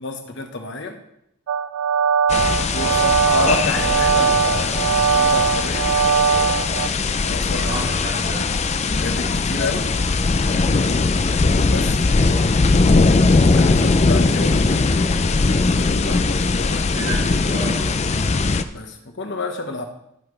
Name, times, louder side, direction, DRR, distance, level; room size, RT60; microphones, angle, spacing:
voice 1, 0.0-1.0 2.7-5.9 7.2-7.9 9.0-9.9 11.7-14.9 16.0-16.8 18.7-19.8, left 2 dB, 60° left, 5 dB, 1.2 m, -30 dB
sound 1, 1.5-6.9, right 6 dB, 90° right, 0.3 m, -20 dB
sound 2, 2.3-18.6, left 3 dB, 35° left, 0.5 m, -19 dB
voice 2, 2.7-3.2 7.6-8.4 12.3-12.5 16.9-17.9, right 3 dB, 70° right, -9 dB, 3.6 m, -32 dB
15.5 x 5.8 x 3.3 m, 0.77 s
head